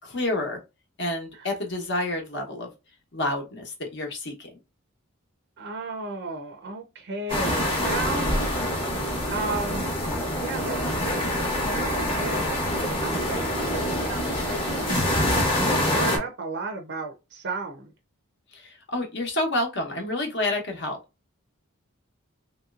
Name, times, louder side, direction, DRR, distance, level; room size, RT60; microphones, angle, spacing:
voice 1, 0.0-0.6 1.0-2.7 3.1-4.5 18.5-21.0, left 1 dB, 55° left, 1.0 m, -29 dB
voice 2, 5.6-8.3 9.3-9.9 10.4-10.8 11.0-12.5 12.7-15.2 15.8-17.9, right 3 dB, 55° right, 0.5 m, -34 dB
sound 1, 7.3-16.2, left 1 dB, 25° left, 0.9 m, -25 dB
3.1 x 2.8 x 2.4 m
head